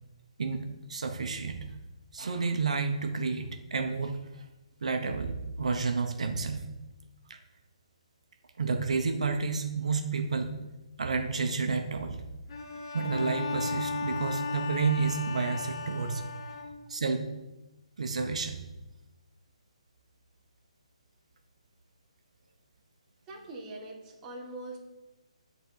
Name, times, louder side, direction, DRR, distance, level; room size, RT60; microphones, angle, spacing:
voice 1, 0.4-1.7 2.1-4.2 4.8-6.7 7.3-7.4 8.6-10.5 11.0-12.2 12.9-16.3 16.9-17.3 18.0-18.6, right 4 dB, 70° right, 5 dB, 1.0 m, -30 dB
Bowed string instrument, 12.5-17.1, left 4 dB, 50° left, 1.0 m, -36 dB
voice 2, 23.3-24.8, right 2 dB, 20° right, -1 dB, 1.2 m, -42 dB
7.9 x 4.1 x 6.5 m, 1.0 s
hypercardioid pair, 160°, 4 cm